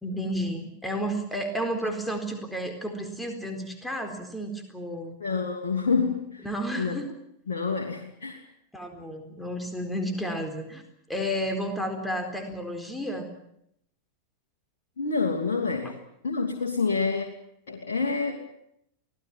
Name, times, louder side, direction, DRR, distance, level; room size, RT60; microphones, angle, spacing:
voice 1, 0.0-5.2 6.4-7.1 8.7-10.8 11.1-13.3, equal, 5° left, 4 dB, 4.2 m, -32 dB
voice 2, 5.2-6.5 6.8-7.0 7.5-8.4 15.0-16.0 16.2-17.3 17.7-18.4, left 4 dB, 60° left, 0 dB, 2.8 m, -27 dB
24.5 x 18.0 x 9.1 m, 0.75 s
figure-of-eight pair, 90°, 0 cm